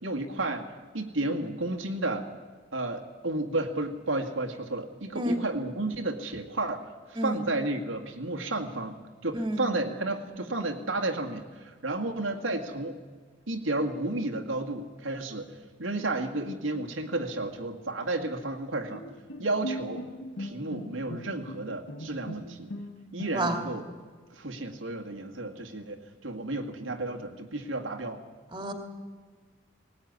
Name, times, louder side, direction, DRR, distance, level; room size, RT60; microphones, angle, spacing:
voice 1, 0.0-0.7 0.9-2.3 2.7-13.0 13.5-15.5 15.8-19.0 19.4-20.0 20.4-22.7 23.1-23.8 24.3-28.2, right 2 dB, 85° right, 2 dB, 2.1 m, -32 dB
voice 2, 5.1-5.4 7.2-7.4 9.3-9.6 23.3-23.6 28.5-28.7, right 1 dB, 25° right, 5 dB, 2.6 m, -29 dB
Bowed string instrument, 18.9-23.8, equal, 70° left, 1.8 m, -40 dB
19.5 x 18.5 x 9.6 m, 1.5 s
head